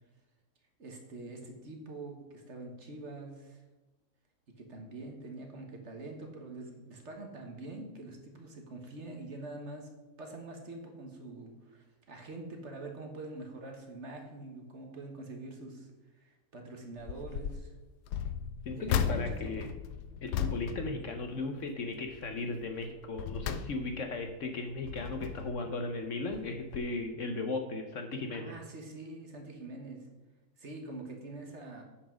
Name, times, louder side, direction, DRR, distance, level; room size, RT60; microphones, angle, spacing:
voice 1, 0.8-3.6 4.6-9.9 10.2-15.9 16.2-17.7 18.7-19.6 28.3-30.1 30.6-31.8, right 2 dB, 45° right, 3 dB, 1.5 m, -45 dB
sound 1, 17.0-17.6 18.1-21.7 22.1-22.4 22.9-24.2 24.7-25.7 26.3-26.5 26.7-26.8, left 8 dB, 85° left, 1.2 m, -36 dB
voice 2, 18.7-19.7 20.2-28.5, left 3 dB, 60° left, 5 dB, 1.0 m, -36 dB
8.5 x 5.8 x 6.2 m, 1.1 s
omnidirectional pair, 1.7 m